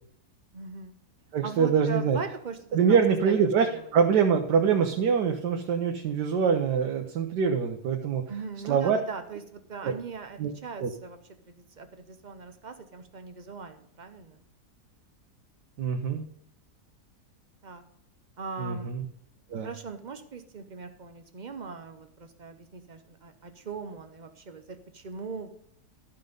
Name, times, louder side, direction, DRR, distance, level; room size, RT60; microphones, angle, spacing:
voice 1, 0.5-1.0 1.4-3.8 8.3-11.2 11.5-14.4 17.6-17.8 18.4-18.9 19.5-25.5, right 5 dB, 45° right, 8 dB, 0.6 m, -40 dB
voice 2, 1.3-2.2 2.7-8.2 8.6-9.0 9.8-9.9 10.4-10.5 10.8-10.9 15.8-16.2 18.6-19.0 19.5-19.7, right 6 dB, 85° right, 3 dB, 1.5 m, -24 dB
12.0 x 5.8 x 5.2 m, 0.69 s
omnidirectional pair, 1.8 m